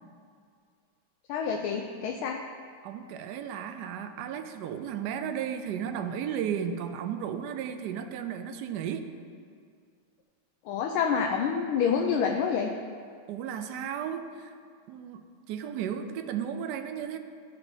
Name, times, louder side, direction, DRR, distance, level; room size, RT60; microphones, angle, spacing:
voice 1, 1.3-2.4 10.7-12.7, left 6 dB, 90° left, 2 dB, 1.4 m, -27 dB
voice 2, 2.8-9.1 13.3-14.5 14.9-17.2, right 8 dB, 75° right, 8 dB, 1.0 m, -34 dB
13.0 x 7.0 x 2.7 m, 2.2 s
omnidirectional pair, 2.2 m